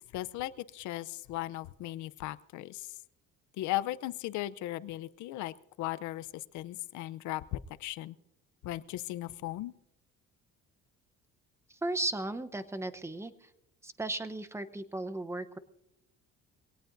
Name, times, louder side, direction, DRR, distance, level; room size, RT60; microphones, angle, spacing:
voice 1, 0.1-2.9 3.6-8.2 8.6-9.7, left 15 dB, 85° left, 16 dB, 0.7 m, -37 dB
voice 2, 11.8-13.3 13.8-15.6, right 2 dB, 10° right, 10 dB, 0.8 m, -35 dB
23.5 x 18.0 x 2.6 m, 0.83 s
cardioid pair, 110°, 29 cm